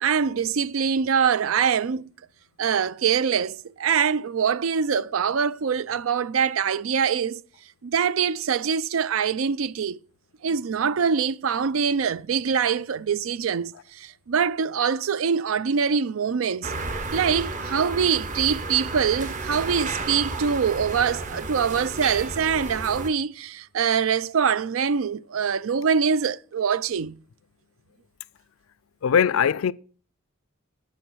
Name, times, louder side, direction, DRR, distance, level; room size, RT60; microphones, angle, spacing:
voice 1, 0.0-2.1 2.6-7.4 7.8-10.0 10.4-16.7 17.1-27.2, right 6 dB, 90° right, 0.4 m, -24 dB
sound 1, 16.6-23.1, right 3 dB, 40° right, 1.0 m, -32 dB
voice 2, 29.0-29.7, left 7 dB, 90° left, 0.4 m, -20 dB
9.2 x 8.2 x 6.2 m
head